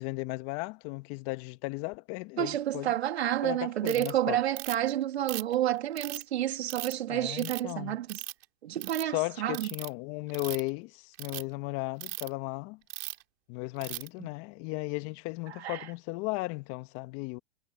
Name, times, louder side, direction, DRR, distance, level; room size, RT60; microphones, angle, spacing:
voice 1, 0.0-2.9 3.4-4.4 7.1-8.0 9.1-12.8 13.5-17.4, left 24 dB, 45° left, 1.6 m, -35 dB
voice 2, 2.4-8.2 8.6-9.7 14.2-14.3 15.5-15.9, right 12 dB, 85° right, 3.4 m, -30 dB
Ratchet pawl, 3.9-4.1 4.6-4.9 5.3-6.2 6.7-6.9 7.4-7.7 8.1-8.4 8.7-9.0 9.5-9.9 10.3-10.7 11.1-11.4 12.0-12.3 12.9-13.2 13.8-14.1, right 18 dB, 65° right, 6.0 m, -38 dB
hypercardioid pair, 125°, 31 cm